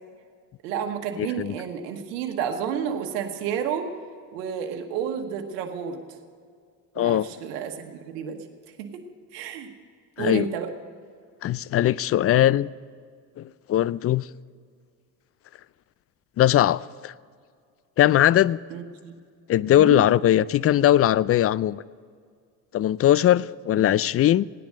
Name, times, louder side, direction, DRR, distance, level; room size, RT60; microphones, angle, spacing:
voice 1, 0.6-3.9 4.3-6.0 6.9-8.4 8.8-9.0 9.3-9.7 10.2-10.7 18.7-19.1 19.7-20.0 23.8-23.9, right 8 dB, 85° right, 5 dB, 1.3 m, -31 dB
voice 2, 1.2-1.5 7.0-7.3 10.2-10.5 11.4-12.7 13.4-14.3 16.4-17.1 18.0-18.6 19.5-21.8 22.7-24.4, left 12 dB, 35° left, 21 dB, 0.4 m, -20 dB
17.5 x 10.5 x 6.6 m, 2.1 s
hypercardioid pair, 60°, 47 cm